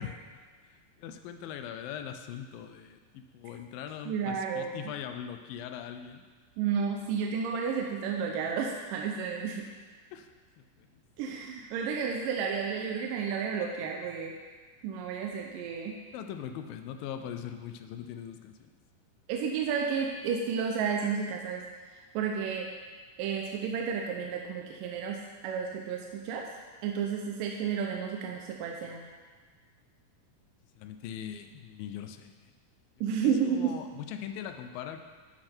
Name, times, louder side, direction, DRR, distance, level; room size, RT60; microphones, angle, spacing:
voice 1, 0.0-6.2 10.1-10.3 10.6-10.9 16.1-18.7 30.8-32.5 33.2-35.0, left 9 dB, 80° left, 7 dB, 2.2 m, -41 dB
voice 2, 4.1-4.8 6.6-9.7 11.2-14.3 14.8-16.0 19.3-21.7 21.9-22.7 23.2-26.5 26.8-29.0 33.0-33.8, right 6 dB, 80° right, 1 dB, 2.1 m, -32 dB
11.5 x 6.5 x 4.4 m, 1.5 s
omnidirectional pair, 4.4 m